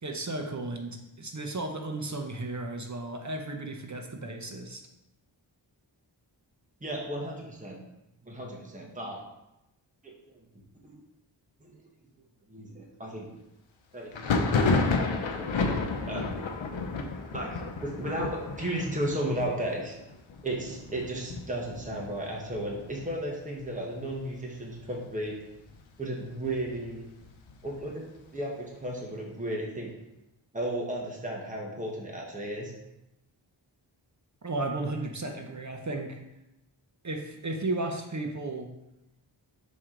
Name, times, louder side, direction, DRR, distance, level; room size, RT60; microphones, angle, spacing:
voice 1, 0.0-4.8 34.4-36.2 37.0-38.7, right 2 dB, 40° right, 3 dB, 0.8 m, -34 dB
voice 2, 6.8-7.8 8.2-9.2 10.0-10.1 10.8-11.0 11.6-11.8 12.5-13.3 13.9-14.1 14.5-15.7 16.1-16.3 17.3-19.9 20.4-25.3 26.0-27.0 27.6-28.1 28.3-29.9 30.5-32.7, right 1 dB, 15° right, -2 dB, 1.3 m, -34 dB
Thunder, 14.1-23.6 23.9-24.6 24.8-25.8 26.2-27.9, left 3 dB, 80° left, 0.8 m, -31 dB
6.2 x 4.6 x 3.8 m, 0.90 s
wide cardioid pair, 75°, 46 cm